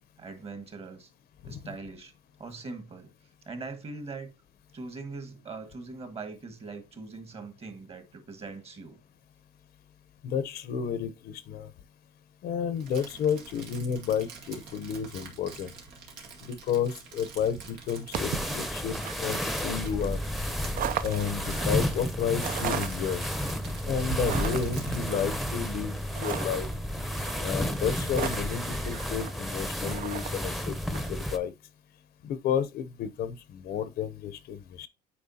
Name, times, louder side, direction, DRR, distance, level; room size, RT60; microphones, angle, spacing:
voice 1, 0.2-1.1 1.4-2.1 2.4-3.1 3.4-4.3 4.7-9.0, right 3 dB, 35° right, 1.5 m, -41 dB
voice 2, 10.2-11.7 12.4-15.7 16.4-19.4 19.6-20.2 21.0-23.2 23.9-26.7 27.4-31.5 32.2-34.9, left 8 dB, 65° left, 0.8 m, -31 dB
Crumpling crinkling, 12.7-25.3, right 5 dB, 90° right, 2.0 m, -48 dB
sound 1, 17.4-31.1, right 10 dB, 55° right, 0.5 m, -37 dB
sound 2, 18.1-31.4, equal, ahead, 0.7 m, -32 dB
8.6 x 4.6 x 2.8 m
cardioid pair, 110°, 17 cm